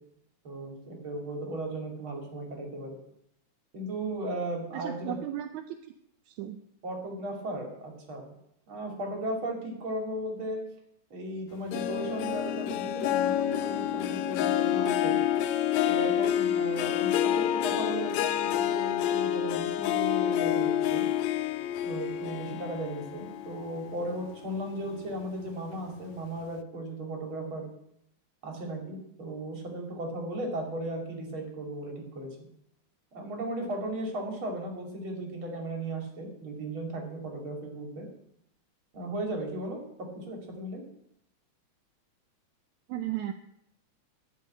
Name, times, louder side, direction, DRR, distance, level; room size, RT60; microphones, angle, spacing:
voice 1, 0.4-3.0 3.7-5.2 6.8-8.3 8.7-10.6 11.1-15.2 15.9-21.1 21.8-27.7 28.4-32.4 33.1-38.1 38.9-40.8, right 1 dB, 45° right, 1 dB, 3.3 m, -36 dB
voice 2, 4.7-5.8 6.3-6.6 42.9-43.3, right 12 dB, 80° right, 7 dB, 2.0 m, -35 dB
Harp, 11.7-24.4 24.9-25.3 25.7-25.8, left 11 dB, 75° left, 1.8 m, -28 dB
12.0 x 6.9 x 8.6 m, 0.77 s
omnidirectional pair, 3.4 m